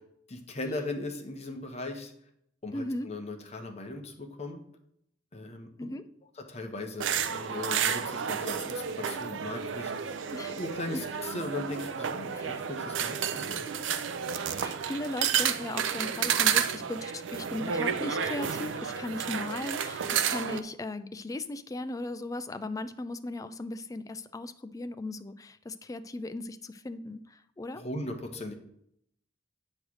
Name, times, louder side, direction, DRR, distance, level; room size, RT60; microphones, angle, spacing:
voice 1, 0.3-2.1 2.6-4.6 5.3-5.9 6.5-9.9 10.5-13.7 27.7-28.5, left 2 dB, 35° left, 3 dB, 1.0 m, -38 dB
voice 2, 2.7-3.1 5.8-6.0 10.3-10.6 12.3-12.6 14.6-27.8, left 2 dB, 20° left, 11 dB, 0.3 m, -37 dB
sound 1, 7.0-20.6, right 7 dB, 70° right, 0.5 m, -31 dB
8.5 x 3.2 x 6.2 m, 0.72 s
head